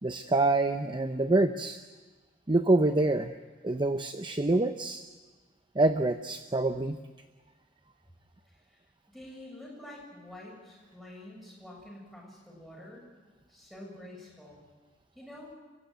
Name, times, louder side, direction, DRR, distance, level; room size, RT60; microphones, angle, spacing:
voice 1, 0.0-1.8 2.5-3.3 3.6-5.0 5.7-7.0, right 2 dB, 25° right, 8 dB, 0.7 m, -26 dB
voice 2, 9.1-13.0 13.5-14.6 15.1-15.5, left 1 dB, ahead, -3 dB, 7.8 m, -47 dB
29.5 x 16.0 x 9.2 m, 1.3 s
head